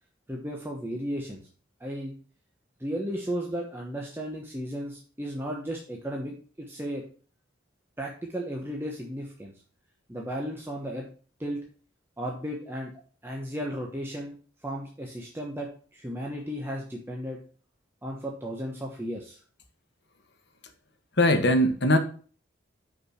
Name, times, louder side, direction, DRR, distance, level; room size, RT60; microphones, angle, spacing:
voice 1, 0.3-1.4 1.8-2.1 2.8-6.4 6.7-7.0 8.0-9.5 10.1-11.1 11.4-11.6 12.2-12.9 13.2-14.4 14.6-17.4 18.0-19.4, equal, 10° right, 0.9 m, -34 dB
voice 2, 21.2-22.0, left 1 dB, 55° left, 1.1 m, -20 dB
5.9 x 4.8 x 6.2 m
head